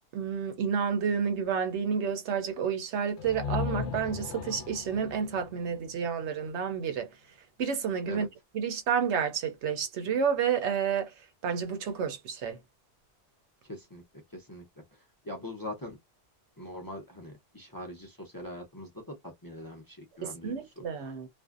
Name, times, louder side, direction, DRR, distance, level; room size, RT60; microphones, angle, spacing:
voice 1, 0.1-7.1 7.6-8.3 8.5-11.1 11.4-12.6 20.2-21.3, right 7 dB, 75° right, 0.9 m, -30 dB
sound 1, 3.2-6.9, left 6 dB, 70° left, 0.8 m, -37 dB
voice 2, 13.6-14.0 14.3-14.6 14.9-16.0 16.6-20.8, left 1 dB, 25° left, 0.5 m, -42 dB
2.5 x 2.1 x 2.3 m
omnidirectional pair, 1.2 m